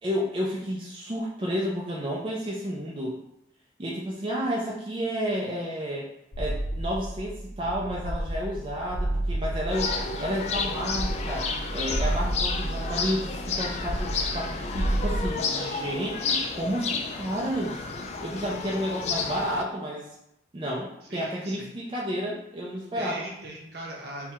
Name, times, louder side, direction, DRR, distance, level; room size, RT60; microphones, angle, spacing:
voice 1, 0.0-3.2 3.8-6.1 6.4-17.9 18.2-20.1 20.5-23.3, equal, 25° right, -4 dB, 0.4 m, -31 dB
sound 1, 6.3-15.3, right 1 dB, 75° left, 0.6 m, -31 dB
sound 2, 9.7-19.6, left 4 dB, 35° left, 0.3 m, -31 dB
voice 2, 21.0-21.7 23.0-24.3, right 1 dB, 60° right, -1 dB, 0.8 m, -39 dB
3.6 x 2.2 x 4.4 m, 0.82 s
head